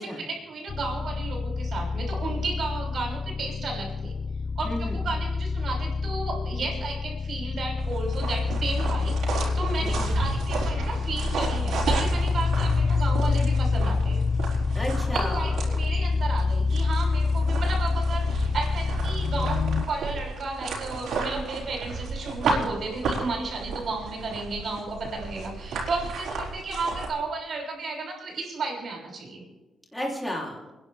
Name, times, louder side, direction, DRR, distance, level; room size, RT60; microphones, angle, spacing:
voice 1, 0.0-4.1 4.6-14.2 15.1-29.4, right 3 dB, 55° right, 0 dB, 6.4 m, -33 dB
sound 1, 0.7-19.8, left 4 dB, 45° left, 0.5 m, -27 dB
voice 2, 4.6-5.0 9.8-10.1 14.7-15.6 29.9-30.7, equal, 5° left, -2 dB, 3.2 m, -33 dB
sound 2, 7.8-27.1, right 3 dB, 80° right, 4.7 m, -33 dB
29.5 x 11.0 x 3.5 m, 1.1 s
cardioid pair, 120°, 0 cm